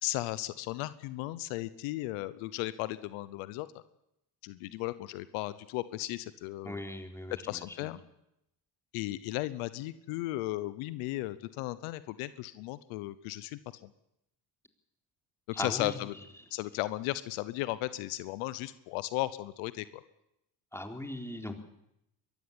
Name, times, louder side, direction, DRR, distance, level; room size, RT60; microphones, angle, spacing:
voice 1, 0.0-3.7 4.4-6.8 7.4-8.0 8.9-13.9 15.6-16.1 16.5-19.8, left 17 dB, 85° left, 15 dB, 1.0 m, -35 dB
voice 2, 6.6-7.9 15.5-15.9 20.7-21.6, left 1 dB, 5° left, 4 dB, 3.7 m, -39 dB
23.0 x 13.5 x 8.8 m, 0.82 s
supercardioid pair, 65°, 50 cm